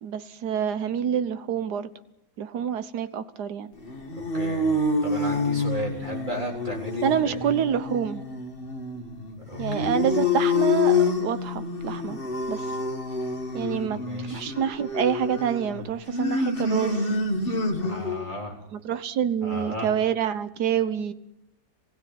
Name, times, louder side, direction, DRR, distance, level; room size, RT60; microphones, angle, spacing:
voice 1, 0.0-1.9 2.4-3.7 7.0-8.2 9.6-12.2 12.5-12.7 13.5-14.0 14.3-17.0 18.7-21.1, right 8 dB, 70° right, 12 dB, 1.6 m, -27 dB
sound 1, 3.8-18.3, left 3 dB, 30° left, 2.3 m, -27 dB
voice 2, 4.1-4.7 5.0-7.4 9.3-10.0 13.7-14.5 17.8-18.6 19.4-19.9, equal, 25° right, 0 dB, 4.1 m, -35 dB
20.5 x 16.0 x 9.4 m, 0.85 s
omnidirectional pair, 1.8 m